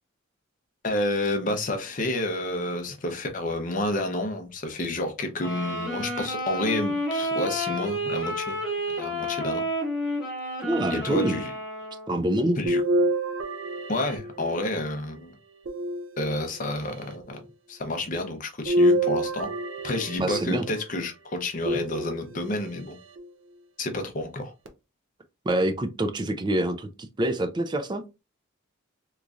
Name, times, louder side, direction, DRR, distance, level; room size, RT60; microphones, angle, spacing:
voice 1, 0.8-8.6 8.9-9.6 10.9-11.5 12.6-12.8 13.9-15.3 16.2-17.4 17.7-19.5 19.8-23.0 23.8-24.5, left 1 dB, 40° left, 0.6 m, -30 dB
Wind instrument woodwind instrument, 5.4-12.2, equal, ahead, 1.4 m, -30 dB
voice 2, 10.6-11.4 12.1-12.6 20.2-20.7 25.5-26.9 27.2-28.0, right 1 dB, 20° right, 0.3 m, -25 dB
sound 1, 12.7-14.9 15.7-16.7 18.7-20.7 21.7-22.5 23.2-23.3 24.7-24.8, right 1 dB, 65° right, 0.6 m, -27 dB
3.5 x 3.0 x 2.4 m
head